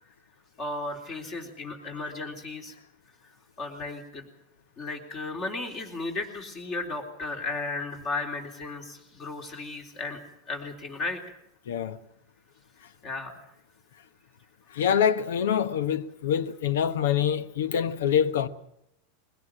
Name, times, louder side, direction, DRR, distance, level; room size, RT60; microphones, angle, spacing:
voice 1, 0.6-2.7 3.6-4.3 4.8-10.2 10.5-11.4 13.0-13.4, left 3 dB, 35° left, 3.7 m, -35 dB
voice 2, 11.7-12.0 14.7-18.5, left 8 dB, 90° left, 1.2 m, -25 dB
21.5 x 17.0 x 7.4 m
supercardioid pair, 140°, 0 cm